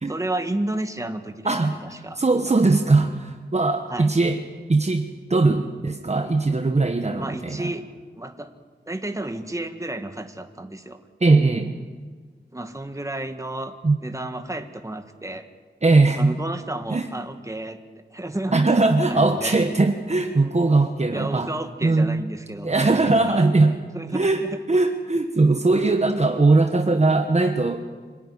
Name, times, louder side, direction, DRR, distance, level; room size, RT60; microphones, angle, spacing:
voice 1, 0.1-2.2 3.9-4.1 7.2-7.9 8.2-8.5 8.9-11.0 12.5-13.7 14.0-15.5 16.1-18.6 19.1-19.6 21.1-23.5 23.9-24.6, right 1 dB, 15° right, 7 dB, 1.7 m, -32 dB
voice 2, 2.2-4.4 4.7-7.7 11.2-11.7 13.8-14.0 15.8-16.3 16.9-17.1 18.5-21.5 21.8-22.2 22.6-23.8 24.1-24.4 24.7-27.9, right 3 dB, 35° right, 5 dB, 1.2 m, -20 dB
26.0 x 13.5 x 9.9 m, 1.5 s
wide cardioid pair, 75°, 19 cm